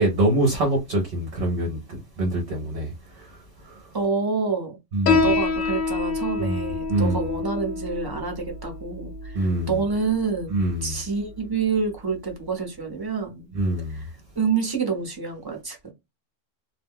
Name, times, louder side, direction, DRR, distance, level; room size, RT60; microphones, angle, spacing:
voice 1, 0.0-3.9 4.9-5.3 6.4-6.6 6.9-7.2 9.3-9.8 10.5-11.0 13.5-14.1, right 1 dB, 55° right, 0.8 m, -25 dB
voice 2, 3.9-4.8 5.2-13.5 13.9-14.1 14.4-15.9, right 5 dB, 25° right, 0.6 m, -27 dB
Piano, 5.1-12.1, left 4 dB, 80° left, 1.0 m, -28 dB
2.3 x 2.2 x 3.5 m
omnidirectional pair, 1.3 m